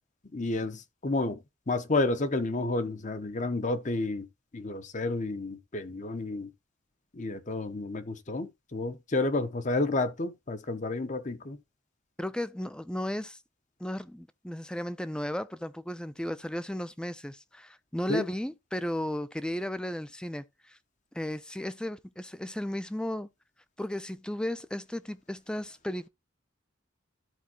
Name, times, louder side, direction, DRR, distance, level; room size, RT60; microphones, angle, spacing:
voice 1, 0.3-4.3 4.5-6.5 7.1-11.6 18.1-18.2, left 2 dB, 40° left, 0.9 m, -30 dB
voice 2, 12.2-13.4 13.8-20.8 21.1-23.3 23.8-26.1, left 1 dB, 5° left, 0.5 m, -35 dB
13.5 x 4.6 x 2.9 m
head